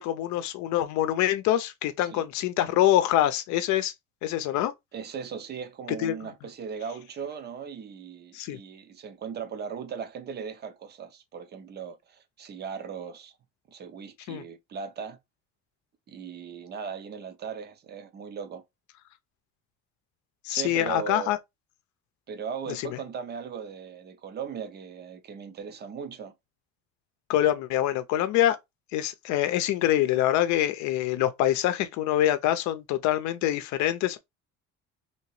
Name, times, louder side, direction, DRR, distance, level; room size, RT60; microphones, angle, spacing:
voice 1, 0.0-3.9 4.2-4.7 6.0-6.1 8.3-8.6 14.3-14.4 20.4-21.4 22.7-23.0 27.3-28.6 28.9-34.2, left 12 dB, 70° left, 0.6 m, -25 dB
voice 2, 4.9-13.4 13.7-15.2 16.1-18.6 20.5-21.3 22.3-26.3, right 6 dB, 35° right, 0.6 m, -38 dB
2.9 x 2.8 x 3.1 m
cardioid pair, 130°, 29 cm